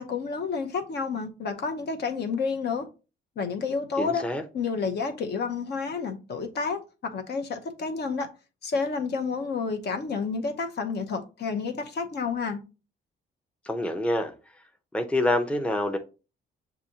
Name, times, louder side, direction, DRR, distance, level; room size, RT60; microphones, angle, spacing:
voice 1, 0.0-2.9 3.4-4.2 4.5-6.8 7.1-8.3 8.6-12.6, left 5 dB, 55° left, 0.8 m, -30 dB
voice 2, 4.0-4.4 13.7-14.3 14.9-16.0, left 1 dB, 5° left, 0.6 m, -26 dB
6.8 x 2.7 x 2.8 m
cardioid pair, 90°, 20 cm